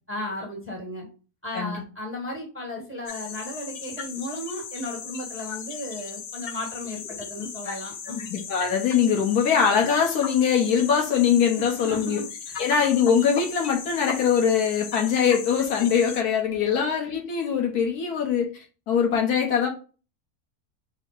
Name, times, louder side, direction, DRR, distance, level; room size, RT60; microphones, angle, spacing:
voice 1, 0.1-1.1 1.4-8.3 11.6-12.6, left 1 dB, 10° right, -1 dB, 1.0 m, -35 dB
sound 1, 3.1-16.2, left 6 dB, 65° left, 0.6 m, -37 dB
voice 2, 8.3-12.2 12.6-19.7, left 7 dB, 85° left, 1 dB, 1.5 m, -22 dB
4.8 x 2.0 x 4.6 m, 0.35 s
omnidirectional pair, 1.6 m